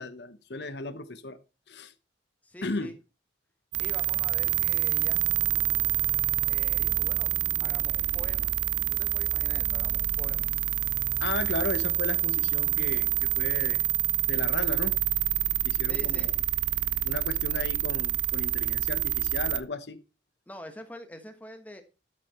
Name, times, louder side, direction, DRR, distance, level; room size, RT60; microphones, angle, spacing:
voice 1, 0.0-1.4 1.7-1.9 2.6-2.9 11.2-13.8 14.3-15.0 15.6-16.4 17.0-20.0, left 3 dB, 65° left, 1.0 m, -35 dB
voice 2, 2.4-2.9 3.8-5.2 6.5-7.3 7.6-8.5 8.9-10.5 15.8-16.3 20.5-21.8, left 1 dB, 10° left, 1.4 m, -45 dB
sound 1, 3.7-19.6, right 13 dB, 80° right, 0.7 m, -27 dB
12.5 x 6.8 x 4.3 m
head